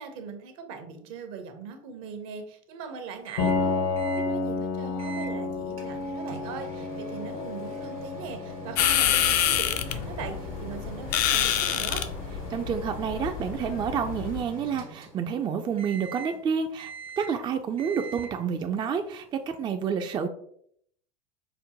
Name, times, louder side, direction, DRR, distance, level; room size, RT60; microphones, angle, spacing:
voice 1, 0.0-12.1, right 5 dB, 65° right, 6 dB, 0.8 m, -40 dB
Microwave oven, 3.3-3.7 4.0-4.3 5.0-5.3 5.8-15.4 15.8-16.4 16.8-17.4 17.8-18.4, right 2 dB, 90° right, 1.2 m, -42 dB
Piano, 3.4-13.0, left 3 dB, 75° left, 1.0 m, -33 dB
sound 1, 8.8-14.4, left 10 dB, 50° left, 0.4 m, -27 dB
voice 2, 12.5-16.9 17.2-20.3, right 7 dB, 25° right, 6 dB, 0.3 m, -29 dB
5.1 x 2.1 x 2.8 m, 0.66 s
hypercardioid pair, 85°, 18 cm